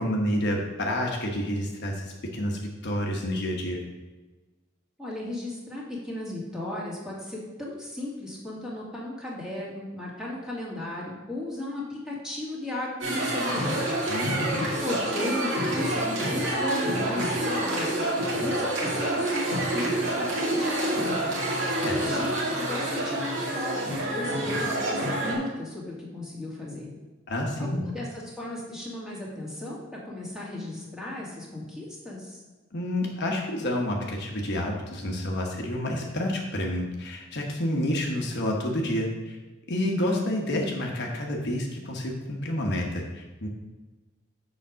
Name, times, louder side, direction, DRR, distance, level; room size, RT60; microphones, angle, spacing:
voice 1, 0.0-2.0 2.3-3.8 14.1-14.6 21.8-22.0 27.3-27.8 32.7-39.4 39.7-43.5, left 1 dB, 55° left, 0 dB, 1.1 m, -29 dB
voice 2, 5.0-13.7 14.6-18.0 18.4-21.3 21.9-26.9 27.6-32.4, left 1 dB, 5° right, -5 dB, 2.1 m, -35 dB
sound 1, 13.0-25.3, right 1 dB, 70° right, 2.6 m, -27 dB
7.0 x 5.1 x 6.3 m, 1.2 s
head